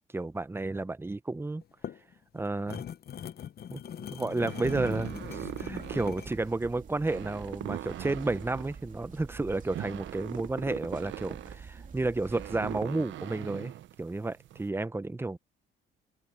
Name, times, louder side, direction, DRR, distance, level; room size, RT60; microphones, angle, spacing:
voice 1, 0.1-1.6 2.3-2.8 3.7-13.7 14.0-15.4, right 2 dB, 10° right, 0.7 m, -32 dB
sound 1, 1.6-6.4, left 9 dB, 50° left, 0.8 m, -41 dB
sound 2, 4.2-14.7, right 13 dB, 70° right, 0.7 m, -41 dB
sound 3, 4.6-12.8, right 5 dB, 40° right, 2.8 m, -47 dB
open air
cardioid pair, 90°, 20 cm